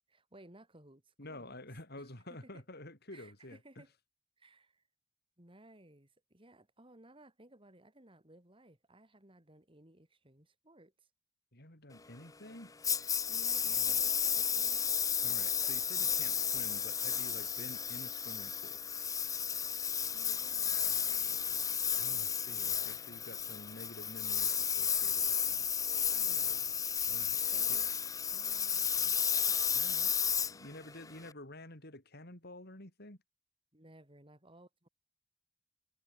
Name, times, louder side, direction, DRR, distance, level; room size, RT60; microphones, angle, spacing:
voice 1, 0.1-1.6 2.0-2.6 3.1-3.9 4.4-4.8 5.4-11.1 13.3-15.0 20.0-21.8 26.1-26.9 27.5-27.9 28.3-29.6 33.7-34.9, right 1 dB, 25° right, 3.8 m, -59 dB
voice 2, 1.2-3.8 11.5-12.7 13.5-14.0 15.2-18.8 22.0-25.7 27.1-27.4 27.7-27.8 29.7-30.1 30.5-33.2, left 1 dB, 50° left, 5.9 m, -50 dB
Engine, 12.8-31.3, left 7 dB, 15° left, 0.6 m, -33 dB
head